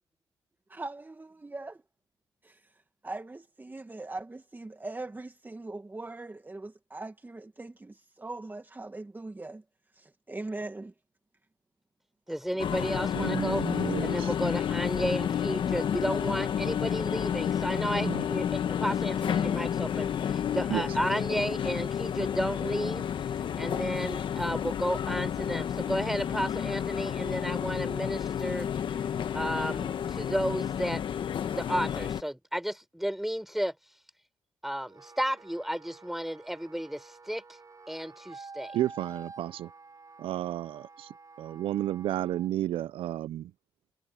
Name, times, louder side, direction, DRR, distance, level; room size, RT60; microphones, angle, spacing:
voice 1, 0.7-1.7 2.4-9.6 9.9-10.9, right 2 dB, 20° right, 1.8 m, -41 dB
voice 2, 12.3-13.6 14.0-23.1 23.6-28.7 29.3-31.0 31.5-33.7 34.6-37.4 37.9-38.8, equal, 5° right, 4.5 m, -32 dB
sound 1, 12.6-32.2, left 8 dB, 65° left, 1.6 m, -31 dB
voice 3, 13.1-14.3 18.0-18.3 20.7-20.8 38.7-39.7 40.2-41.1 41.4-43.5, right 13 dB, 75° right, 0.6 m, -32 dB
Wind instrument woodwind instrument, 34.8-42.5, right 4 dB, 35° right, 7.1 m, -49 dB
supercardioid pair, 55°, 9 cm